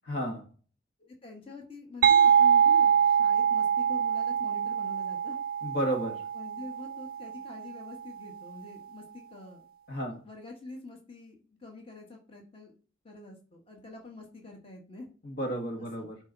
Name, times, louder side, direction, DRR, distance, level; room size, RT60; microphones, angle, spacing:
voice 1, 0.1-0.5 5.6-6.2 9.9-10.2 15.2-16.2, right 1 dB, 55° left, 2 dB, 1.9 m, -32 dB
voice 2, 1.0-5.4 6.3-9.7 10.2-12.7 13.0-15.1 15.8-16.1, left 2 dB, 30° left, 1 dB, 1.8 m, -46 dB
sound 1, 2.0-7.5, right 8 dB, 50° right, 0.4 m, -24 dB
11.0 x 4.5 x 4.1 m, 0.38 s
head